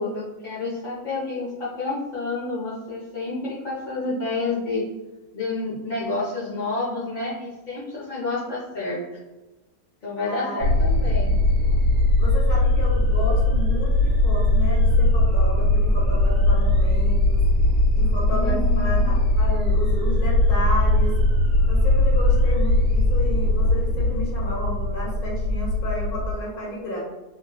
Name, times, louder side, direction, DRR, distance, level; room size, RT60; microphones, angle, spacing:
voice 1, 0.0-4.9 5.3-9.0 10.0-11.4 18.3-19.1, left 3 dB, 45° left, -9 dB, 0.6 m, -29 dB
voice 2, 10.3-11.0 12.2-17.4 17.9-21.1 21.7-27.0, equal, 75° left, -4 dB, 1.5 m, -32 dB
sound 1, 10.6-26.3, left 1 dB, 70° right, 1.1 m, -20 dB
3.1 x 2.9 x 2.3 m, 1.1 s
omnidirectional pair, 1.6 m